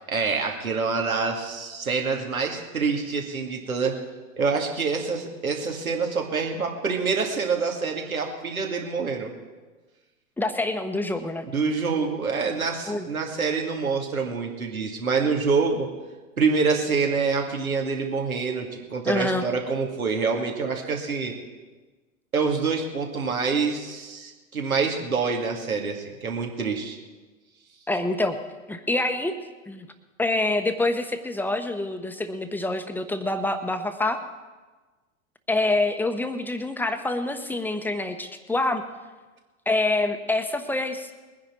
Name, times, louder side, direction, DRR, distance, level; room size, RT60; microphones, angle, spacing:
voice 1, 0.1-4.0 4.4-9.3 11.5-15.9 16.4-21.3 22.3-27.0, right 4 dB, 80° right, 1 dB, 2.5 m, -26 dB
voice 2, 10.4-11.5 12.9-13.1 19.1-19.4 27.9-28.4 28.7-29.4 29.7-29.9 30.2-34.2 35.5-38.8 39.7-41.1, left 2 dB, 5° left, 8 dB, 1.0 m, -26 dB
21.5 x 10.0 x 4.5 m, 1.3 s
figure-of-eight pair, 90°, 42 cm